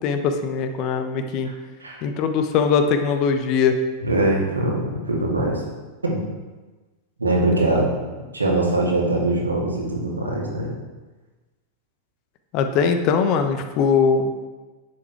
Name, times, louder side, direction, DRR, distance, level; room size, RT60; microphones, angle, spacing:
voice 1, 0.0-1.5 2.0-3.8 12.5-14.3, left 6 dB, 40° left, 7 dB, 1.0 m, -21 dB
voice 2, 4.0-5.6 6.0-6.2 7.2-7.9 8.3-10.7, right 2 dB, 80° right, -2 dB, 2.2 m, -22 dB
9.8 x 7.5 x 4.8 m, 1.2 s
figure-of-eight pair, 90°, 0 cm